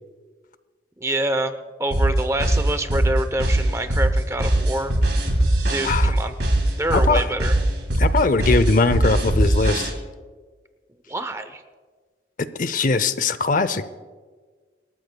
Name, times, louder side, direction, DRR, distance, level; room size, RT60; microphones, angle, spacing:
voice 1, 1.0-1.5 1.8-4.9 5.7-6.3 6.8-7.6 11.1-11.6, right 1 dB, 15° right, 9 dB, 0.8 m, -26 dB
sound 1, 1.9-9.9, right 1 dB, 65° right, 2.9 m, -20 dB
voice 2, 6.9-7.2 8.0-9.9 12.6-13.8, left 3 dB, 45° left, 14 dB, 0.6 m, -20 dB
26.5 x 13.5 x 2.3 m, 1.5 s
head